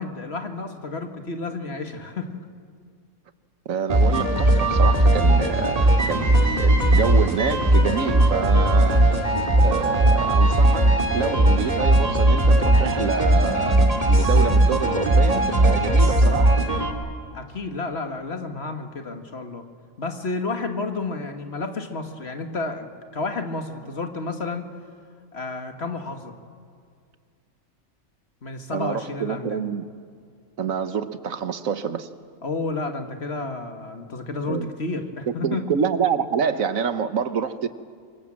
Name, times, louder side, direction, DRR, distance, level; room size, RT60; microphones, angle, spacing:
voice 1, 0.0-2.4 17.3-19.6 20.0-22.9 23.1-24.7 25.3-26.3 28.4-29.6 32.4-35.7, left 3 dB, 50° left, 6 dB, 2.0 m, -31 dB
voice 2, 3.6-9.0 9.6-16.5 28.7-29.9 30.6-32.1 34.5-34.7 35.3-37.7, right 6 dB, 75° right, 11 dB, 1.5 m, -27 dB
sound 1, 3.9-16.9, right 1 dB, 25° right, 2.4 m, -18 dB
27.0 x 24.0 x 7.5 m, 2.2 s
omnidirectional pair, 1.4 m